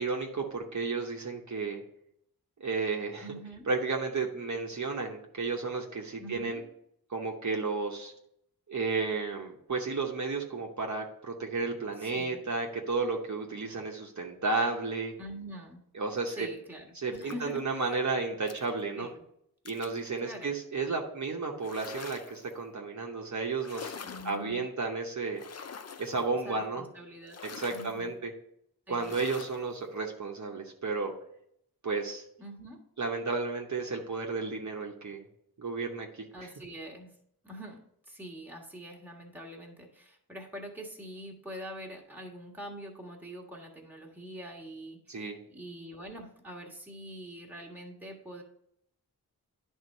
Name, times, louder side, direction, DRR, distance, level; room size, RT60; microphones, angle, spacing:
voice 1, 0.0-1.8 2.6-3.3 3.7-6.6 7.1-8.1 8.7-15.1 15.9-16.5 16.9-19.1 19.6-24.0 24.2-25.4 26.0-26.8 27.5-28.3 28.9-31.1 31.8-32.2 33.0-35.2 35.6-36.2 45.1-45.4, right 4 dB, 50° right, 0 dB, 1.0 m, -32 dB
voice 2, 3.2-3.7 6.2-6.6 12.0-12.4 15.2-15.8 16.3-18.0 18.9-19.2 20.2-20.5 24.0-24.6 26.4-27.4 27.7-28.1 28.9-29.1 32.4-32.8 36.3-37.1 37.4-48.4, equal, 5° right, -1 dB, 1.5 m, -44 dB
sound 1, 17.1-17.6 18.5-18.7 19.7-20.0 21.6-22.5 23.6-24.4 25.4-26.3 27.3-28.0 29.0-29.6, left 6 dB, 45° left, 0.5 m, -44 dB
10.5 x 3.6 x 5.4 m, 0.72 s
wide cardioid pair, 110°, 37 cm